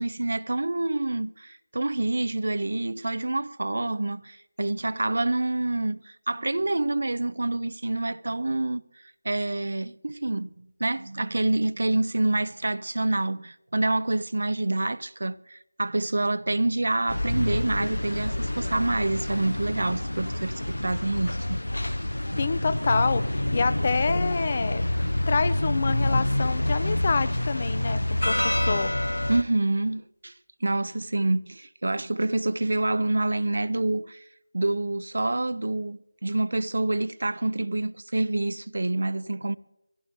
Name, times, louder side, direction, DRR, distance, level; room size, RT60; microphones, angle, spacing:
voice 1, 0.0-8.8 9.2-21.6 29.3-30.3 30.6-34.2 34.5-39.6, right 2 dB, 55° right, 0.4 m, -27 dB
sound 1, 17.1-29.4, left 1 dB, 80° left, 0.7 m, -27 dB
voice 2, 22.4-24.8 25.3-28.9, left 4 dB, 30° left, 0.5 m, -27 dB
24.0 x 16.5 x 2.8 m
figure-of-eight pair, 165°, 0 cm